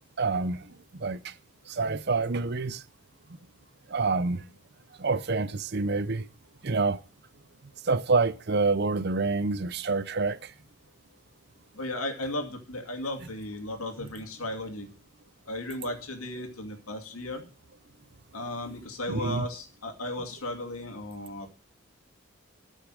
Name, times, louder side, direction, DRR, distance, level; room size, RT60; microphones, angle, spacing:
voice 1, 0.2-0.6 0.9-1.3 1.7-2.8 3.9-4.4 5.0-6.2 6.6-7.0 7.8-10.5 19.1-19.4, right 3 dB, 50° right, 0.6 m, -27 dB
voice 2, 11.7-14.9 15.5-17.4 18.3-21.5, left 1 dB, 85° left, 2.5 m, -35 dB
13.5 x 6.5 x 6.3 m
head